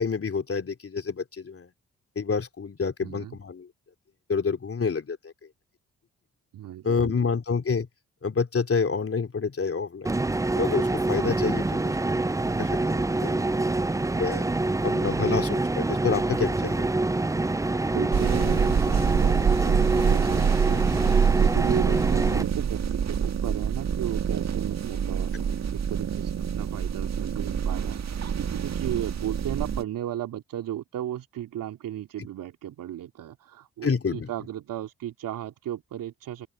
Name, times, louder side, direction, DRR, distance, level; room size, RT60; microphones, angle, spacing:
voice 1, 0.0-1.7 2.1-3.7 4.3-5.3 6.8-7.9 8.2-10.1 10.5-11.9 12.6-13.4 14.2-14.5 14.8-16.9 33.8-34.3, left 5 dB, 45° left, 3.1 m, -28 dB
voice 2, 3.0-3.4 6.5-7.3 17.9-21.1 21.4-36.5, right 12 dB, 75° right, 2.9 m, -35 dB
sound 1, 10.0-22.4, right 2 dB, 10° right, 0.6 m, -26 dB
cat purring in bed, 18.1-29.8, right 7 dB, 55° right, 1.8 m, -26 dB
open air
hypercardioid pair, 45°, 33 cm